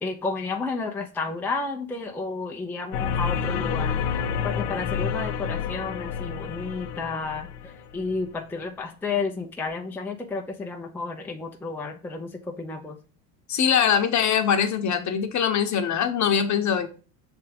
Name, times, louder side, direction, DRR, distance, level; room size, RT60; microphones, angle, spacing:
voice 1, 0.0-4.2 4.4-13.0, left 4 dB, 5° left, 0.6 m, -32 dB
sound 1, 2.9-8.2, left 7 dB, 80° left, 1.0 m, -29 dB
voice 2, 13.5-16.9, left 8 dB, 40° left, 1.0 m, -22 dB
6.7 x 3.5 x 5.1 m
supercardioid pair, 105°, 46 cm